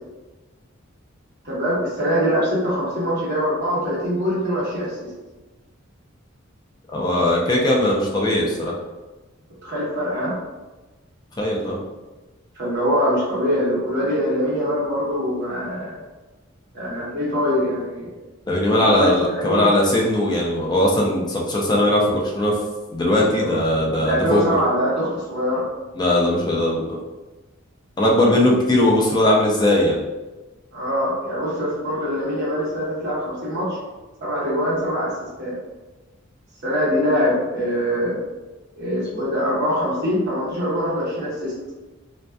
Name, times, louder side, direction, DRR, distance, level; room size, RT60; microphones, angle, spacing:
voice 1, 1.4-5.1 9.6-10.3 12.5-15.9 16.7-18.1 18.7-19.7 24.0-25.6 30.7-33.8 34.2-35.1 35.4-35.5 36.6-38.2 38.8-41.5, equal, 55° right, -8 dB, 1.1 m, -23 dB
voice 2, 6.9-8.7 11.4-11.8 18.5-22.6 22.9-24.5 26.0-27.0 28.0-30.0, left 1 dB, 20° left, -3 dB, 0.4 m, -19 dB
2.6 x 2.2 x 2.2 m, 1.2 s
head